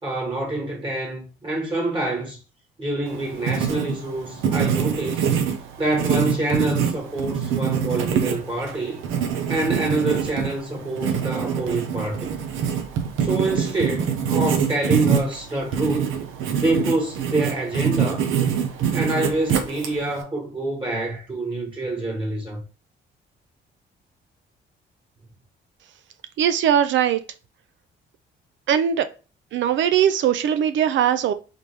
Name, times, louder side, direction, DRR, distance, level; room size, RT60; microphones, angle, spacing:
voice 1, 0.0-2.4 2.8-5.3 5.8-9.0 9.5-12.3 13.2-16.2 16.6-18.3 18.9-22.6, right 2 dB, 25° right, 1.6 m, -26 dB
Writing, 3.1-20.2, right 7 dB, 85° right, 0.8 m, -25 dB
voice 2, 26.4-27.2 28.7-29.1 29.5-31.3, right 9 dB, 70° right, 0.5 m, -20 dB
4.0 x 3.5 x 3.3 m
cardioid pair, 90°, 20 cm